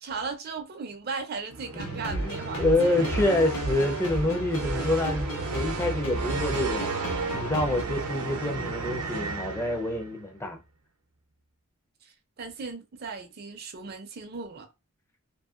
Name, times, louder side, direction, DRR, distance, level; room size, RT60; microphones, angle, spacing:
voice 1, 0.0-3.1 12.4-14.7, right 4 dB, 45° right, 0.5 m, -37 dB
sound 1, 1.5-10.2, right 3 dB, 85° right, 0.6 m, -33 dB
voice 2, 1.7-6.9 7.3-10.6, left 2 dB, 10° left, 0.5 m, -27 dB
sound 2, 1.8-7.8, right 1 dB, 70° left, 1.1 m, -35 dB
2.7 x 2.6 x 2.4 m
head